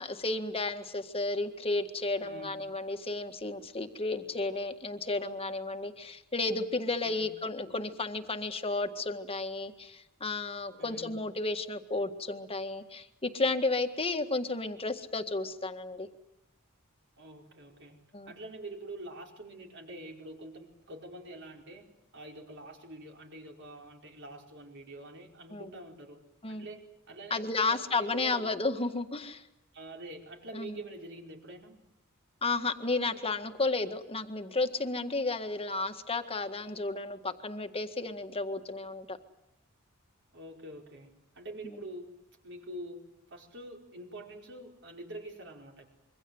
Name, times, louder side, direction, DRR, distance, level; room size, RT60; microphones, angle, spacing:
voice 1, 0.0-16.1 18.1-18.3 25.5-25.7 26.4-26.7 27.3-29.4 30.5-30.8 32.4-39.2, left 3 dB, 25° left, 7 dB, 1.8 m, -33 dB
voice 2, 2.2-2.7 7.0-7.3 10.8-11.2 17.2-21.8 22.1-26.2 26.5-28.6 29.7-31.8 40.3-42.1 42.4-45.9, right 1 dB, 55° right, 2 dB, 4.9 m, -46 dB
26.0 x 24.0 x 7.9 m, 0.90 s
head